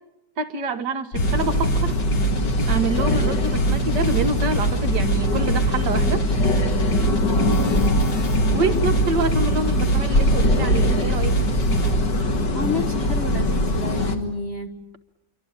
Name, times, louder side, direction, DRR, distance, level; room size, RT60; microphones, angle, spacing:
voice 1, 0.4-2.0 2.7-6.2 8.5-11.4, right 3 dB, 70° right, 10 dB, 2.1 m, -26 dB
sound 1, 1.1-11.9, right 2 dB, 90° left, 3.7 m, -23 dB
sound 2, 1.2-14.2, left 1 dB, 70° left, 2.9 m, -23 dB
voice 2, 7.3-7.6 12.5-14.8, left 2 dB, 40° left, 3 dB, 1.6 m, -30 dB
27.5 x 24.0 x 8.8 m, 0.89 s
omnidirectional pair, 1.9 m